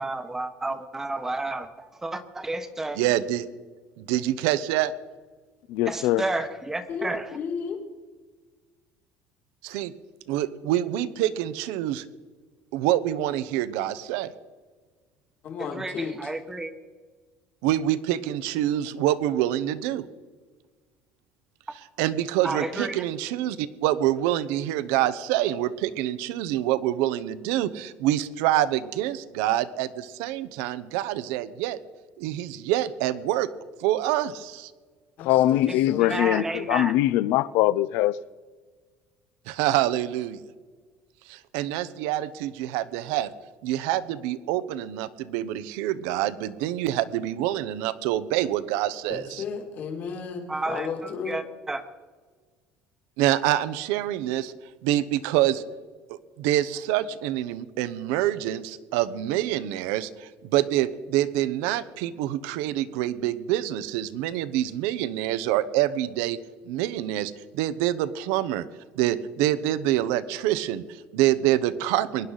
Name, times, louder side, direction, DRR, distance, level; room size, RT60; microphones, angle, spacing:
voice 1, 0.0-3.0 5.9-7.4 15.6-16.7 22.4-23.0 35.7-36.9 50.5-51.8, right 2 dB, 10° right, 0.9 m, -31 dB
voice 2, 3.0-3.5 4.0-4.9 9.6-9.9 10.3-12.0 12.7-14.3 17.6-20.1 22.0-31.8 32.2-33.5 33.8-34.7 39.5-40.4 41.3-43.3 43.6-49.4 53.2-54.5 54.8-55.6 56.4-66.4 66.7-68.7 69.0-72.3, right 13 dB, 90° right, 0.8 m, -26 dB
voice 3, 5.7-6.2 35.2-38.2, left 14 dB, 70° left, 0.5 m, -22 dB
voice 4, 6.9-7.8 15.4-16.3 35.2-36.2 49.1-51.4, left 6 dB, 45° left, 2.2 m, -34 dB
23.0 x 11.0 x 4.0 m
cardioid pair, 155°, 4 cm